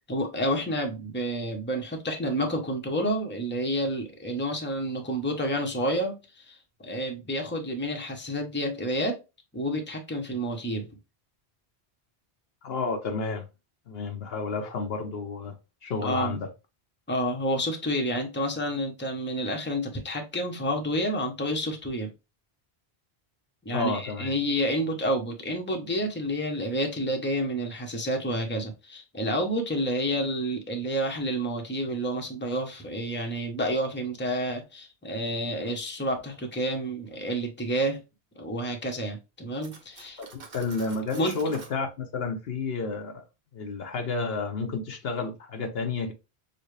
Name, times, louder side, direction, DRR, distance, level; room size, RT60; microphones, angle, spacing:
voice 1, 0.1-9.2 9.5-10.9 16.0-16.4 17.1-22.1 23.6-38.0 38.4-40.2 41.2-41.4, equal, 10° left, 0.8 m, -29 dB
voice 2, 12.6-13.5 13.9-15.6 15.8-16.5 23.7-24.3 40.2-43.2 43.5-46.1, left 4 dB, 70° left, 0.9 m, -31 dB
Cutlery silverware, 39.6-41.8, right 4 dB, 60° right, 1.1 m, -47 dB
6.7 x 2.2 x 3.2 m
omnidirectional pair, 1.1 m